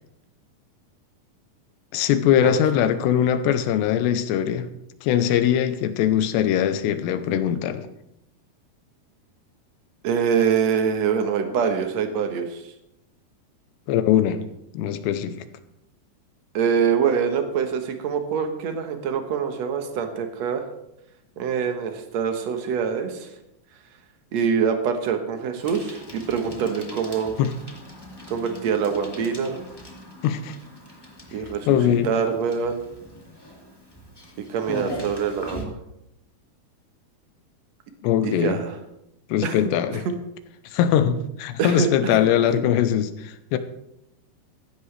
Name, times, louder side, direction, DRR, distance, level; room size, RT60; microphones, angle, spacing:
voice 1, 1.9-4.7 5.0-7.9 13.9-14.4 14.7-15.4 27.4-27.5 30.2-30.6 31.7-32.1 38.0-38.6 39.3-40.0 40.7-43.6, left 10 dB, 90° left, 3.0 m, -21 dB
voice 2, 10.0-12.6 16.5-20.6 21.4-23.3 24.3-27.4 28.3-29.6 31.3-32.8 34.5-35.7 38.2-38.8 39.4-39.6 39.9-40.1 41.6-42.2, right 6 dB, 70° right, 1.6 m, -25 dB
Bicycle, 25.6-35.6, equal, 10° left, 1.0 m, -40 dB
16.0 x 13.0 x 3.3 m
omnidirectional pair, 4.8 m